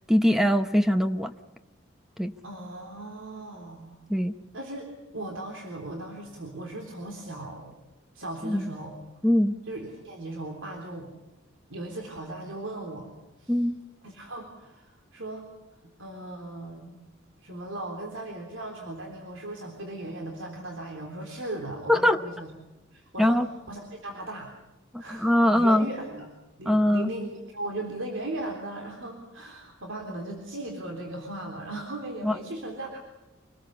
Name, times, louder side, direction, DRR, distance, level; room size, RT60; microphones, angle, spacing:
voice 1, 0.1-1.3 2.2-2.3 4.1-4.3 8.4-8.7 9.2-9.5 13.5-13.8 21.9-22.2 23.2-23.5 24.9-25.9 26.6-27.1 32.2-32.4, left 1 dB, ahead, 9 dB, 0.8 m, -22 dB
voice 2, 2.4-4.0 4.5-4.9 5.1-7.8 8.1-9.0 9.7-11.1 11.7-13.1 13.4-13.5 14.0-15.5 16.0-17.0 17.4-22.5 22.9-24.5 25.0-26.3 26.6-33.0, right 1 dB, 80° right, 2 dB, 3.7 m, -37 dB
26.0 x 19.5 x 7.1 m, 1.1 s
head